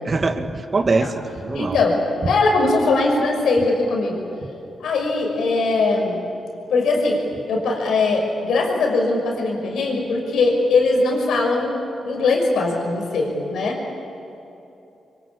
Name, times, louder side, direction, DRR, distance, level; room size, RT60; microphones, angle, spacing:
voice 1, 0.0-1.8, right 3 dB, 45° right, 6 dB, 2.2 m, -22 dB
voice 2, 1.5-2.0 2.2-4.2 4.8-6.2 6.7-13.9, left 3 dB, 85° left, 1 dB, 6.0 m, -20 dB
27.0 x 24.5 x 8.6 m, 2.9 s
cardioid pair, 70°, 0 cm